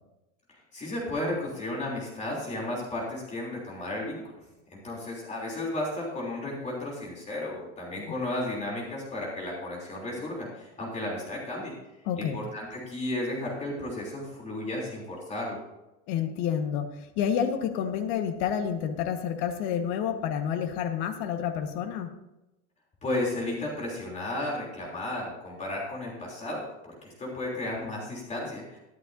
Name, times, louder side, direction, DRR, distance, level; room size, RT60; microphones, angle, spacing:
voice 1, 0.5-4.4 4.7-11.8 12.2-15.6 23.0-28.8, left 1 dB, 20° left, -3 dB, 3.3 m, -34 dB
voice 2, 12.0-12.4 16.1-22.1, left 8 dB, 55° left, 6 dB, 1.5 m, -29 dB
13.0 x 12.5 x 2.7 m, 0.95 s
supercardioid pair, 150°, 37 cm